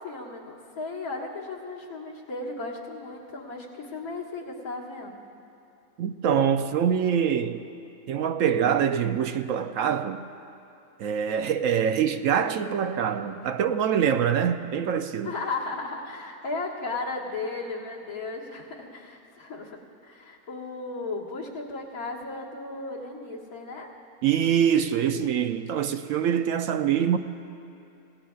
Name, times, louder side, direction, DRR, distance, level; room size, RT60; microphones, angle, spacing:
voice 1, 0.0-5.2 15.2-23.9, left 3 dB, 75° left, 2.1 m, -35 dB
voice 2, 6.0-7.6 8.1-10.2 11.0-15.3 24.2-27.2, right 8 dB, 70° right, 0.9 m, -24 dB
26.5 x 17.0 x 2.4 m
omnidirectional pair, 1.6 m